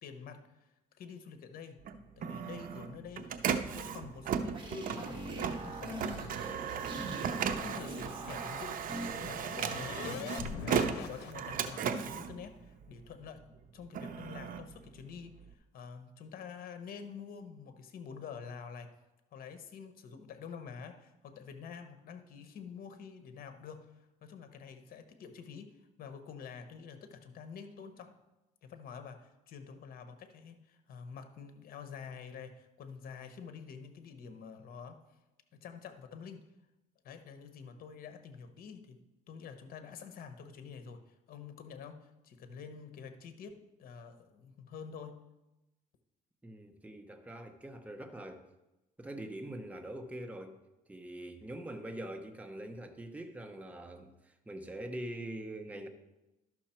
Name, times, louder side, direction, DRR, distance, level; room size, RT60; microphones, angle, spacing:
voice 1, 0.0-1.8 2.2-3.4 3.7-5.1 5.4-6.4 7.6-8.8 9.1-10.3 10.8-13.4 13.7-18.9 19.3-28.2 28.6-35.0 35.5-36.5 37.0-39.0 39.3-45.2, left 6 dB, 60° left, 9 dB, 1.1 m, -48 dB
Printer, 1.8-13.2 13.7-15.5, right 7 dB, 55° right, 0.7 m, -36 dB
sound 1, 4.2-9.4, right 2 dB, 30° right, 2.1 m, -43 dB
sound 2, 8.2-11.8, left 8 dB, 85° left, 0.7 m, -44 dB
voice 2, 46.4-48.5 49.0-50.6 50.9-55.9, right 1 dB, 10° right, 5 dB, 0.9 m, -43 dB
11.5 x 6.1 x 4.4 m, 0.98 s
cardioid pair, 110°, 17 cm